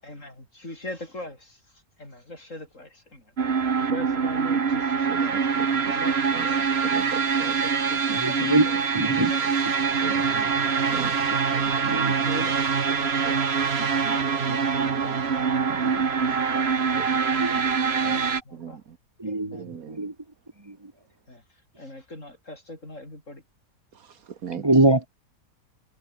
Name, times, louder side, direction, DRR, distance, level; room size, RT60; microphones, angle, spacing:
voice 1, 0.0-5.5 5.8-6.6 7.0-11.4 12.1-12.6 12.9-14.5 14.7-15.7 16.2-17.5 18.0-18.8 19.2-19.7 21.3-23.4, left 1 dB, 50° left, 7.9 m, -42 dB
sound 1, 3.4-18.4, right 6 dB, 40° right, 1.5 m, -24 dB
voice 2, 6.8-7.5 8.4-8.5 9.2-9.5 10.0-10.1 10.4-10.5 10.9-11.1 11.5-12.0 13.2-13.4 17.0-17.2 18.5-19.0 19.5-20.1 23.9-24.6, right 7 dB, 65° right, 1.6 m, -38 dB
voice 3, 8.1-8.7 8.9-9.3 10.3-10.4 11.9-12.4 13.8-14.2 14.5-15.0 15.8-16.0 17.4-17.6 18.0-18.1 19.2-20.1 20.7-20.8 24.6-25.1, right 2 dB, 15° right, 1.6 m, -25 dB
omnidirectional pair, 1.7 m